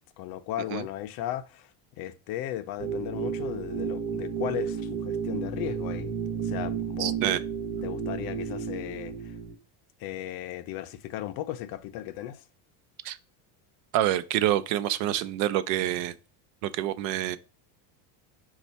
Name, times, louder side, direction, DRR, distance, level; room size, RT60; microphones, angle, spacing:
voice 1, 0.2-1.7 2.0-6.1 6.4-7.4 7.8-9.4 10.0-12.4, left 13 dB, 50° left, 0.5 m, -36 dB
sound 1, 2.8-9.5, right 6 dB, 40° right, 0.9 m, -32 dB
voice 2, 7.0-7.4 13.0-13.2 13.9-16.1 16.6-17.4, right 12 dB, 85° right, 0.7 m, -27 dB
5.3 x 2.4 x 4.0 m
cardioid pair, 145°, 48 cm